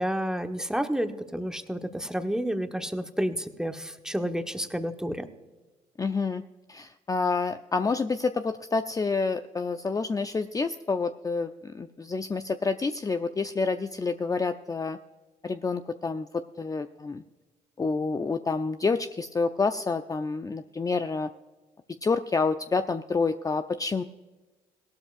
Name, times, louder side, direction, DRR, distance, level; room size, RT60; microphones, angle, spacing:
voice 1, 0.0-5.2, equal, 5° right, 7 dB, 1.2 m, -30 dB
voice 2, 6.0-6.4 6.7-15.0 15.4-17.2 17.8-21.3 22.0-24.0, left 4 dB, 25° left, 9 dB, 0.5 m, -28 dB
17.5 x 12.0 x 2.5 m, 1.2 s
supercardioid pair, 60°, 15 cm